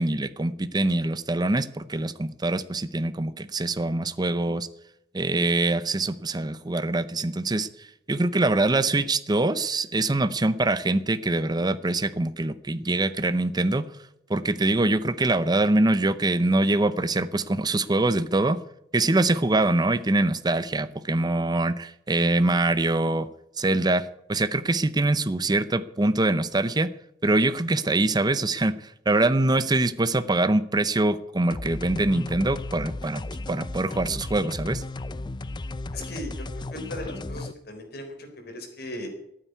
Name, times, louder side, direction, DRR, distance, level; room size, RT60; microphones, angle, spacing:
voice 1, 0.0-4.7 5.1-13.9 14.3-18.6 18.9-23.3 23.6-26.9 27.2-34.8, right 2 dB, 25° right, 13 dB, 0.6 m, -24 dB
sound 1, 31.5-37.5, left 2 dB, 25° left, 0.5 m, -35 dB
voice 2, 35.9-36.3 36.7-38.1 38.4-39.1, left 1 dB, 60° left, 4 dB, 4.0 m, -37 dB
14.0 x 9.1 x 9.5 m, 0.79 s
head